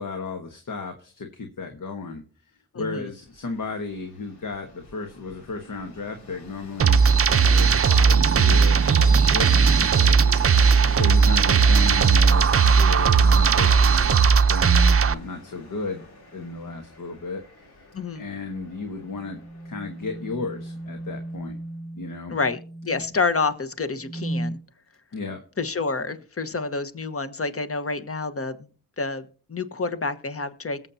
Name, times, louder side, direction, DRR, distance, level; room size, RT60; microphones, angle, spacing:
voice 1, 0.0-16.0 16.3-17.6 18.1-19.4 19.6-21.6 21.9-22.4 25.1-25.4, left 4 dB, 55° left, 4 dB, 1.4 m, -34 dB
voice 2, 2.7-3.0 17.9-18.2 22.3-24.6 25.6-28.7 29.0-29.2 29.5-30.9, left 4 dB, 35° left, 10 dB, 1.2 m, -28 dB
Train, 3.3-21.4, left 1 dB, 85° left, 2.3 m, -42 dB
sound 1, 6.8-15.1, right 5 dB, 35° right, 0.7 m, -17 dB
sound 2, 14.6-15.0 16.4-16.9 19.1-23.3 24.0-24.6, right 1 dB, ahead, 1.5 m, -35 dB
21.0 x 7.3 x 2.7 m, 0.41 s
supercardioid pair, 45°, 37 cm